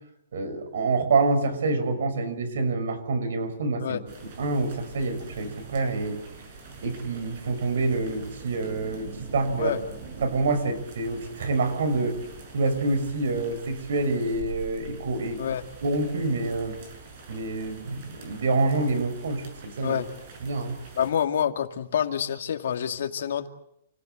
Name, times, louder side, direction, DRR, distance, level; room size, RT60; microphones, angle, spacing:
voice 1, 0.3-4.0 4.4-6.2 6.8-9.8 10.2-12.2 12.5-15.4 15.8-16.8 17.3-20.0 20.4-20.8, right 3 dB, 70° right, 10 dB, 5.8 m, -27 dB
sound 1, 4.1-21.1, right 4 dB, 35° right, 7.2 m, -44 dB
voice 2, 21.0-23.5, left 9 dB, 60° left, 5 dB, 2.3 m, -27 dB
30.0 x 17.0 x 7.8 m, 0.78 s
hypercardioid pair, 175°, 0 cm